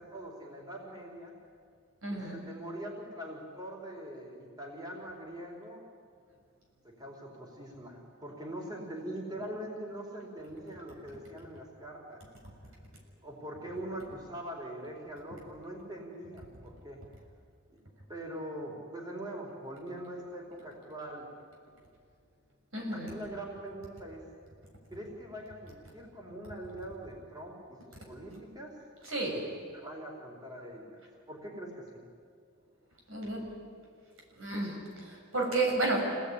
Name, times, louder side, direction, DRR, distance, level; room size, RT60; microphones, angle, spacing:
voice 1, 0.0-1.3 2.1-5.8 6.8-12.2 13.2-17.0 18.1-21.3 22.9-24.3 24.9-28.8 29.7-31.0 31.3-32.0, right 1 dB, 20° right, -1 dB, 4.4 m, -43 dB
voice 2, 2.0-2.4 22.7-23.2 29.0-29.5 33.1-33.5 34.4-36.1, right 2 dB, 85° right, 0 dB, 6.9 m, -32 dB
27.5 x 18.5 x 10.0 m, 2.1 s
head